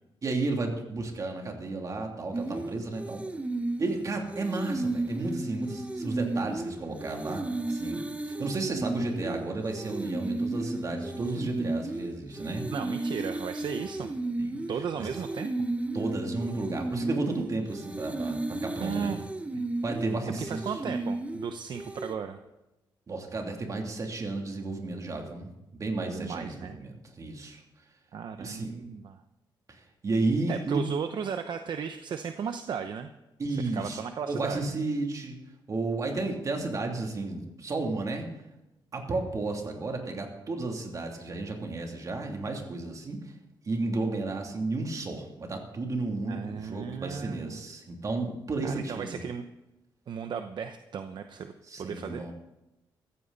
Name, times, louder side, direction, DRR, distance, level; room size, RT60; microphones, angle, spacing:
voice 1, 0.2-3.3 3.8-12.7 14.4-14.6 15.0-15.1 15.9-19.2 19.8-20.9 23.1-27.6 28.4-28.9 29.7-30.8 33.4-35.4 35.7-38.3 38.9-43.3 43.6-49.2 51.7-52.3, right 3 dB, 40° right, 2 dB, 2.9 m, -33 dB
sound 1, 2.3-22.2, right 2 dB, 15° right, 0.9 m, -34 dB
voice 2, 12.7-14.1 14.7-15.5 18.8-19.3 19.5-19.6 20.4-22.4 26.0-26.8 28.1-29.2 30.5-33.1 33.7-34.6 46.3-47.6 48.6-49.4 50.1-52.3, right 7 dB, 60° right, 8 dB, 0.8 m, -35 dB
15.0 x 14.5 x 4.1 m, 0.95 s
cardioid pair, 110°, 9 cm